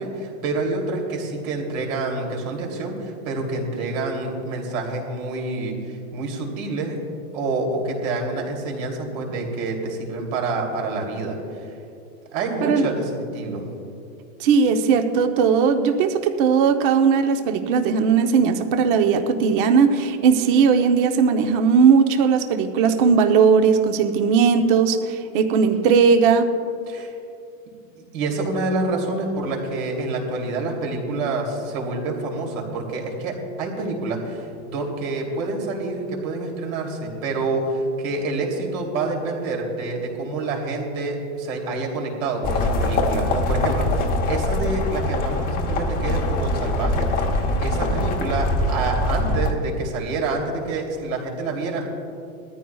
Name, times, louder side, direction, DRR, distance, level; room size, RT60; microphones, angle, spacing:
voice 1, 0.0-7.0 7.3-11.8 12.3-13.7 26.9-27.1 27.9-47.1 47.5-51.9, right 3 dB, 65° right, 1 dB, 3.0 m, -27 dB
voice 2, 14.4-26.5, right 6 dB, 35° right, 6 dB, 0.8 m, -18 dB
sound 1, 42.4-49.5, left 1 dB, 20° left, 0.9 m, -23 dB
21.0 x 14.0 x 2.3 m, 2.5 s
supercardioid pair, 165°, 43 cm